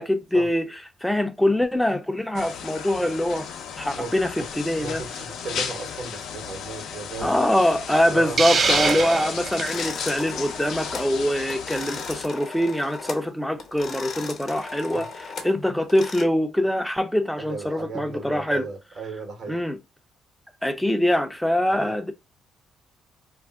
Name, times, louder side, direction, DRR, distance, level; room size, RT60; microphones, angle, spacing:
voice 1, 0.0-3.5 3.8-5.0 7.2-15.1 15.4-18.7 19.5-19.8 20.6-22.1, left 1 dB, 5° left, 0.5 m, -24 dB
sound 1, 2.3-12.2, left 7 dB, 80° left, 0.5 m, -34 dB
voice 2, 3.9-4.5 4.8-7.4 8.1-8.4 14.9-15.1 17.4-19.6 21.7-22.0, right 4 dB, 65° right, 1.1 m, -36 dB
Hiss, 8.4-9.7, right 5 dB, 45° right, 0.4 m, -23 dB
sound 2, 8.5-9.1 9.5-11.1 11.4-13.3 13.6-16.2, left 4 dB, 50° left, 0.7 m, -37 dB
2.5 x 2.1 x 3.4 m
cardioid pair, 90°, 0 cm